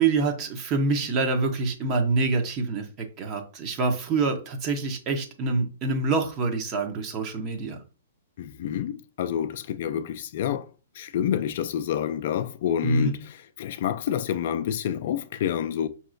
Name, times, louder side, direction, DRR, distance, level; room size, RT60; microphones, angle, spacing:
voice 1, 0.0-2.9 3.2-7.8 12.8-13.1, right 3 dB, 35° right, 0.9 m, -26 dB
voice 2, 8.4-10.7 11.0-15.9, left 9 dB, 55° left, 0.3 m, -28 dB
5.4 x 2.9 x 2.5 m
hypercardioid pair, 135°, 0 cm